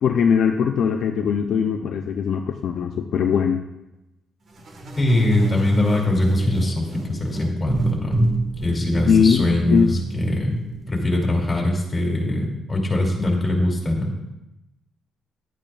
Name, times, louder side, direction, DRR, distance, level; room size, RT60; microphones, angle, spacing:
voice 1, 0.0-3.6 9.1-9.9, left 6 dB, 65° left, 4 dB, 0.6 m, -20 dB
sound 1, 4.6-11.4, right 3 dB, 50° right, 1.8 m, -28 dB
voice 2, 4.9-8.3 8.6-10.6 10.9-14.1, left 1 dB, 25° left, 0 dB, 2.8 m, -22 dB
12.0 x 8.9 x 2.5 m, 0.92 s
cardioid pair, 90°, 0 cm